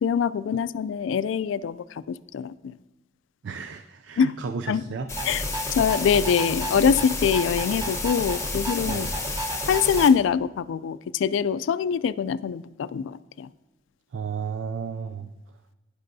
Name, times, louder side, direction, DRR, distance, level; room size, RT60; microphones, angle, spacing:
voice 1, 0.0-2.7 4.2-4.3 4.7-4.8 5.3-5.4 5.8-9.1 9.7-13.5, left 7 dB, 90° left, 17 dB, 0.3 m, -24 dB
voice 2, 3.4-5.1 8.9-9.1 14.1-15.7, right 5 dB, 70° right, 9 dB, 0.4 m, -34 dB
sound 1, 5.1-10.1, left 4 dB, 15° left, 0.9 m, -32 dB
sound 2, 5.1-10.1, right 1 dB, 20° right, 1.1 m, -32 dB
11.0 x 10.0 x 2.7 m, 1.1 s
head